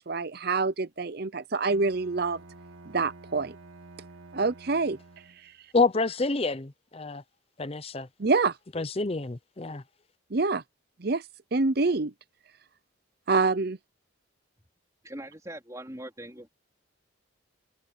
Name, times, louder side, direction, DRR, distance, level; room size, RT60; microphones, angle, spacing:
voice 1, 0.0-2.4 2.9-3.6 4.3-5.0 8.2-8.5 10.3-10.6 11.0-11.2 11.5-12.1 13.3-13.8, right 3 dB, 50° right, 0.7 m, -26 dB
Bowed string instrument, 1.7-5.6, right 2 dB, 90° right, 2.2 m, -50 dB
voice 2, 5.7-7.2 7.6-8.1 8.7-9.8, left 3 dB, 30° left, 0.6 m, -28 dB
voice 3, 15.0-16.5, right 1 dB, 15° right, 4.1 m, -41 dB
head